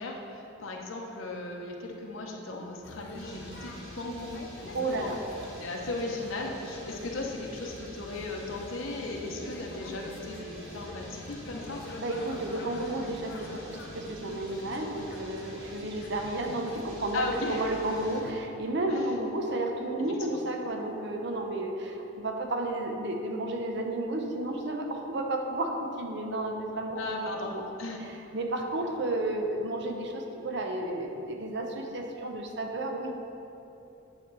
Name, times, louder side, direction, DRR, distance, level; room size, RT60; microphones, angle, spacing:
voice 1, 0.0-5.2 5.6-11.9 17.1-17.7 18.8-19.1 20.1-20.4 26.9-27.5 27.8-28.0, left 2 dB, 80° left, 0 dB, 1.0 m, -37 dB
sound 1, 2.8-18.3, left 2 dB, 55° left, 0.7 m, -44 dB
sound 2, 3.1-18.2, right 1 dB, 75° right, 1.7 m, -51 dB
voice 2, 4.7-5.2 12.0-27.6 28.0-33.2, right 1 dB, 60° right, 3 dB, 0.8 m, -32 dB
9.1 x 6.2 x 4.0 m, 3.0 s
head